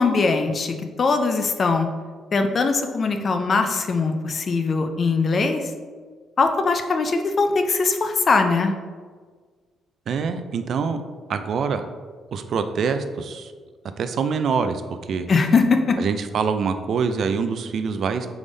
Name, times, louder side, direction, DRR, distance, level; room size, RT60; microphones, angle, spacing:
voice 1, 0.0-1.9 2.3-5.6 6.4-8.7 15.3-16.0, left 4 dB, 45° left, 5 dB, 0.4 m, -21 dB
voice 2, 10.1-11.0 11.3-11.8 12.3-13.5 14.0-14.8 15.1-15.3 16.0-18.3, right 5 dB, 60° right, 9 dB, 0.3 m, -25 dB
3.6 x 3.5 x 3.9 m, 1.5 s
cardioid pair, 90°, 0 cm